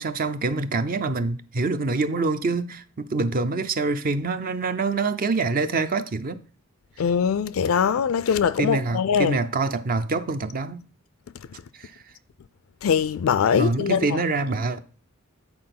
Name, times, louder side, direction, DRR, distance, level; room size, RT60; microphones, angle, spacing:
voice 1, 0.0-6.4 8.6-10.8 11.7-11.9 13.6-14.8, right 3 dB, 45° right, 0.5 m, -25 dB
voice 2, 7.0-9.4 12.8-14.2, left 7 dB, 70° left, 0.4 m, -22 dB
8.7 x 4.3 x 5.9 m
head